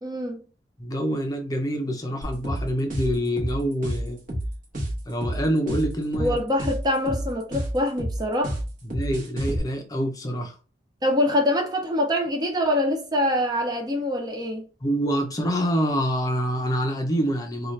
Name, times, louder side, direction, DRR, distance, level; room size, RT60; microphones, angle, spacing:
voice 1, 0.0-0.4 6.2-8.6 11.0-14.7, left 1 dB, 25° right, 0.5 m, -24 dB
voice 2, 0.8-4.2 5.1-6.4 8.8-10.6 14.8-17.7, equal, 20° left, 0.6 m, -26 dB
sound 1, 2.2-9.6, right 1 dB, 45° right, 1.1 m, -29 dB
2.7 x 2.3 x 3.1 m
head